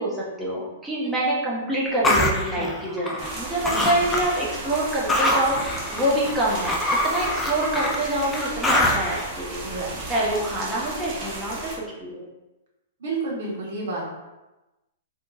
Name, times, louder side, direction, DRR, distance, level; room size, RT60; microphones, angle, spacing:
voice 1, 0.0-9.6 10.1-12.3, right 1 dB, 10° right, -7 dB, 1.1 m, -26 dB
sound 1, 2.0-3.4 3.6-4.4 4.7-9.2, left 1 dB, 10° left, 0.4 m, -24 dB
sound 2, 3.2-11.8, right 2 dB, 30° right, 0.9 m, -35 dB
voice 2, 9.6-10.1 13.0-14.1, right 3 dB, 60° right, -3 dB, 1.1 m, -30 dB
3.5 x 2.6 x 2.4 m, 1.0 s
hypercardioid pair, 115°, 0 cm